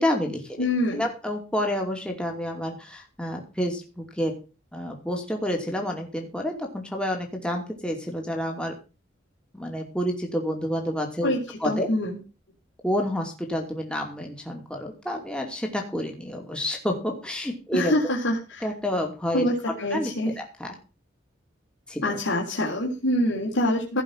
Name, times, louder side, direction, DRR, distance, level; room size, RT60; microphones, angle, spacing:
voice 1, 0.0-0.7 0.9-4.3 4.7-8.7 9.5-11.3 11.6-11.9 12.8-18.1 18.6-19.4 19.9-20.7 21.9-22.2, equal, 5° left, 1 dB, 2.6 m, -29 dB
voice 2, 0.6-1.0 11.2-11.4 11.6-12.2 17.7-18.7 19.3-19.5 19.8-20.3 22.0-24.0, left 1 dB, 90° left, -3 dB, 3.7 m, -25 dB
17.0 x 5.6 x 7.4 m, 0.33 s
head